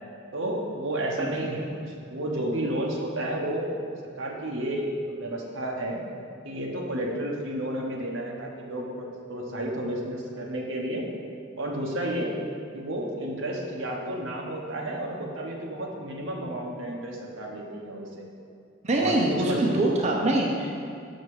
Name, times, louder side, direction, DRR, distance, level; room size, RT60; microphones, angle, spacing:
voice 1, 0.3-3.7 4.2-6.0 6.4-11.0 11.6-12.3 12.7-18.2 19.0-19.8, right 1 dB, 80° right, -1 dB, 1.2 m, -31 dB
voice 2, 1.2-1.5 18.8-20.7, right 1 dB, 35° right, -1 dB, 0.7 m, -24 dB
6.6 x 6.4 x 4.9 m, 2.5 s
head